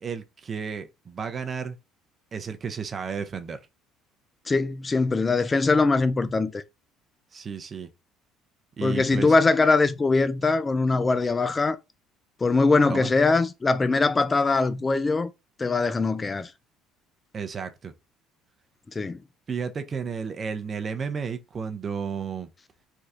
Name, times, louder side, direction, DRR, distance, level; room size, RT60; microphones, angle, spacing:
voice 1, 0.0-1.8 2.3-3.6 7.3-7.9 8.8-9.3 12.9-13.1 17.3-17.9 19.5-22.5, right 6 dB, 40° right, 0.6 m, -32 dB
voice 2, 4.5-6.6 8.8-11.8 12.4-15.3 15.6-16.5 18.9-19.2, left 3 dB, 25° left, 0.3 m, -22 dB
3.4 x 2.3 x 2.8 m
hypercardioid pair, 60°, 0 cm